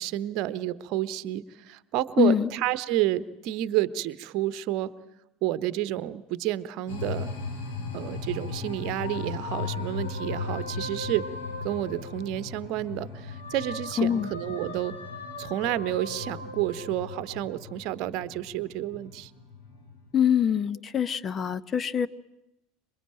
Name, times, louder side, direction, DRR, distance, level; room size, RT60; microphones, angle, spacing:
voice 1, 0.0-4.9 5.4-7.3 7.9-11.3 11.6-14.9 15.4-19.3, right 14 dB, 50° right, 15 dB, 1.1 m, -30 dB
voice 2, 2.2-2.5 14.0-14.3 20.1-22.1, left 8 dB, 30° left, 16 dB, 1.0 m, -24 dB
sound 1, 6.9-20.1, left 4 dB, 60° left, 7.2 m, -38 dB
sound 2, 7.7-12.7 13.1-17.8, left 2 dB, 75° left, 4.9 m, -41 dB
26.5 x 24.0 x 9.0 m, 0.90 s
figure-of-eight pair, 75°, 0 cm